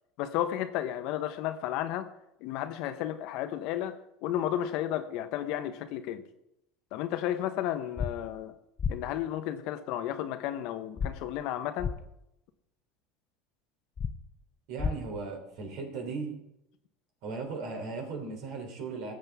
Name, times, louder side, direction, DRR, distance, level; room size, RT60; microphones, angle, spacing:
voice 1, 0.2-2.1 2.4-6.2 6.9-8.5 8.9-11.9, left 11 dB, 65° left, 10 dB, 1.0 m, -33 dB
sound 1, 8.0-8.1 8.8-8.9 11.0-11.1 11.8-11.9 14.0-14.1 14.8-14.9, left 6 dB, 30° left, 0.7 m, -29 dB
voice 2, 14.7-16.4 17.2-19.1, right 4 dB, 65° right, 3 dB, 3.3 m, -37 dB
18.0 x 7.8 x 3.6 m, 0.83 s
supercardioid pair, 125°, 0 cm